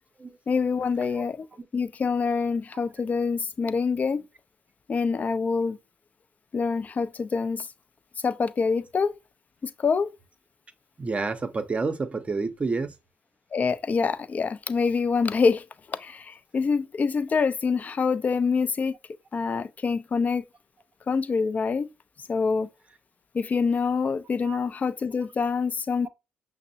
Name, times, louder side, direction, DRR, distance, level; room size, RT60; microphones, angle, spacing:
voice 1, 0.5-1.5 1.7-4.2 4.9-5.8 6.5-7.7 8.2-9.2 9.6-10.1 13.5-18.9 19.3-20.4 21.1-21.9 22.3-22.7 23.3-26.1, left 5 dB, 40° left, 0.4 m, -26 dB
voice 2, 11.0-12.9 24.4-24.6, right 4 dB, 30° right, 0.6 m, -29 dB
5.8 x 2.0 x 2.7 m
supercardioid pair, 65°, 4 cm